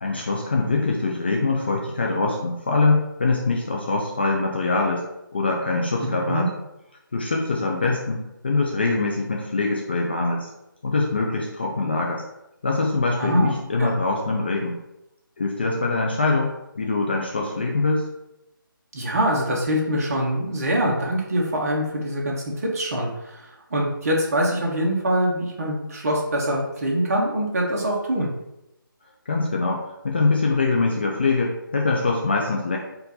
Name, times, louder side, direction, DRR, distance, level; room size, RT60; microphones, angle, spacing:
voice 1, 0.0-5.0 5.3-6.5 7.1-10.5 10.8-12.2 12.6-14.8 15.4-18.0 29.3-32.8, left 3 dB, 30° left, -1 dB, 0.3 m, -23 dB
voice 2, 13.2-13.9 18.9-28.3, equal, 40° right, -2 dB, 1.1 m, -24 dB
4.4 x 2.5 x 4.0 m, 0.89 s
figure-of-eight pair, 165°, 12 cm